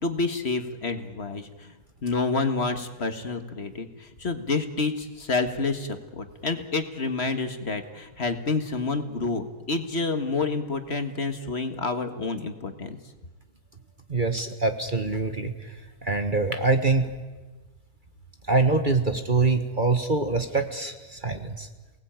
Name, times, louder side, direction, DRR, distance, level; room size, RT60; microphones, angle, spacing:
voice 1, 0.0-1.7 2.0-13.0, left 3 dB, 40° left, 7 dB, 1.9 m, -28 dB
voice 2, 14.1-17.1 18.5-21.7, right 3 dB, 30° right, 7 dB, 1.5 m, -24 dB
28.5 x 19.0 x 8.9 m, 1.2 s
omnidirectional pair, 1.7 m